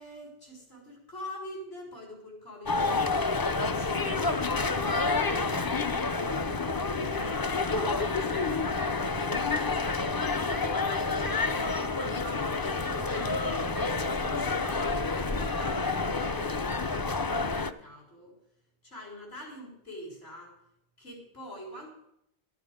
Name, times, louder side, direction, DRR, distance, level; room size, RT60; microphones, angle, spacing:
voice 1, 0.0-13.5 13.8-18.3 18.8-20.6 21.0-21.9, equal, 80° left, -1 dB, 4.1 m, -46 dB
sound 1, 2.7-17.7, left 3 dB, 30° left, 0.4 m, -29 dB
12.5 x 12.0 x 5.0 m, 0.75 s
omnidirectional pair, 1.0 m